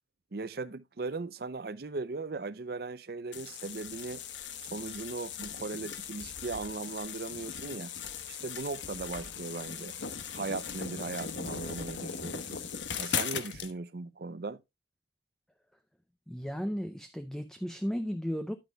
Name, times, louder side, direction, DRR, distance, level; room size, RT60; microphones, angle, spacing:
voice 1, 0.3-4.2 4.7-7.9 8.3-10.0 10.3-12.6 13.0-14.6, right 3 dB, 55° right, 0.5 m, -38 dB
sound 1, 3.3-13.7, left 7 dB, 80° left, 1.1 m, -39 dB
voice 2, 16.3-18.6, equal, 5° left, 0.5 m, -34 dB
11.0 x 9.1 x 2.3 m
head